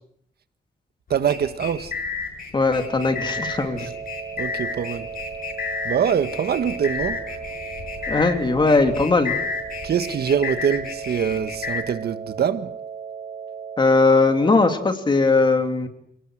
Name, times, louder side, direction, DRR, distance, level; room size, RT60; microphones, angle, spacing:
sound 1, 1.1-11.8, left 5 dB, 60° left, 6.5 m, -32 dB
voice 1, 1.1-1.9 4.4-5.1 5.8-7.2 9.8-12.7, right 8 dB, 75° right, 1.6 m, -24 dB
voice 2, 2.5-3.9 8.1-9.4 13.8-15.9, left 3 dB, 30° left, 2.8 m, -19 dB
sound 2, 2.7-14.7, right 6 dB, 55° right, 3.1 m, -36 dB
28.5 x 19.0 x 8.0 m
wide cardioid pair, 155°, 16 cm